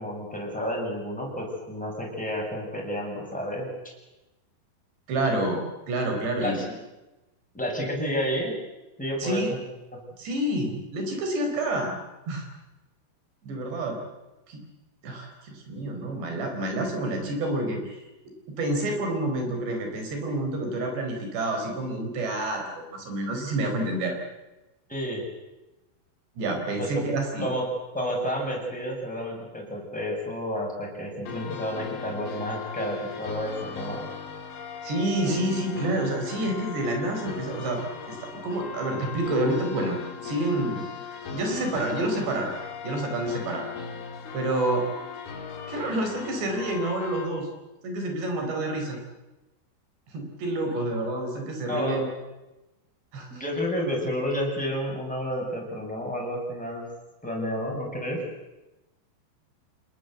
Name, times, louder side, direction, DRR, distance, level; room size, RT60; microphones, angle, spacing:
voice 1, 0.0-3.9 6.4-6.6 7.5-8.6 9.0-9.6 9.9-10.0 24.9-25.2 26.8-27.1 27.4-27.6 27.9-34.1 51.7-52.0 53.3-56.9 57.2-58.2, equal, ahead, -2 dB, 7.1 m, -30 dB
voice 2, 5.1-6.6 9.2-9.5 10.2-11.9 12.3-12.4 13.4-14.0 14.5-14.6 15.0-18.0 18.6-24.2 26.4-27.5 34.8-37.8 38.1-40.0 40.2-40.8 41.3-43.6 44.3-44.8 45.7-47.5 47.8-49.0 50.1-52.0 53.1-53.3, right 1 dB, 70° right, 4 dB, 6.7 m, -28 dB
sound 1, 31.3-47.3, left 6 dB, 90° left, 6.2 m, -38 dB
28.0 x 19.5 x 8.1 m, 1.0 s
omnidirectional pair, 5.2 m